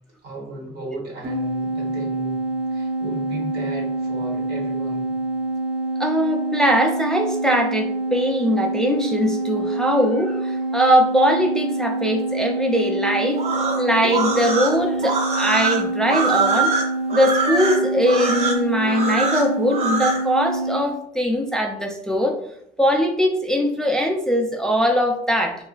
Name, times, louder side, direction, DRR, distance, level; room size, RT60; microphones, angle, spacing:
voice 1, 0.2-2.4 2.7-5.1, right 1 dB, 80° right, -2 dB, 1.2 m, -35 dB
sound 1, 1.2-20.8, right 2 dB, 60° right, 1.3 m, -26 dB
voice 2, 6.0-13.4 13.8-16.7 17.1-22.4 22.8-25.6, equal, 5° left, 1 dB, 0.3 m, -21 dB
sound 2, 13.3-20.2, right 3 dB, 40° right, 0.6 m, -23 dB
2.8 x 2.3 x 2.3 m, 0.73 s
cardioid pair, 110°, 17 cm